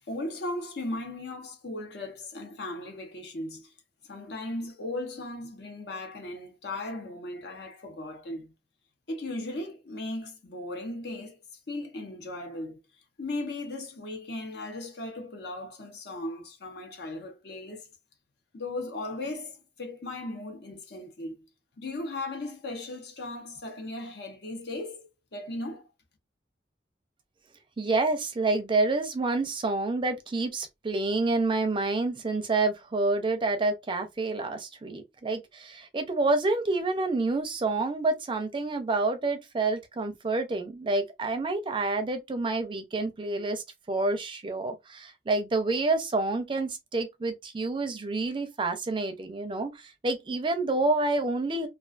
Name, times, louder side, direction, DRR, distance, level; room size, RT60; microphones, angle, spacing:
voice 1, 0.1-3.7 4.0-8.5 9.1-11.4 11.7-12.8 13.2-17.9 18.5-21.5 21.8-25.9, left 2 dB, 65° left, 0.7 m, -37 dB
voice 2, 27.8-51.7, right 3 dB, 30° right, 0.4 m, -28 dB
2.3 x 2.3 x 2.4 m
head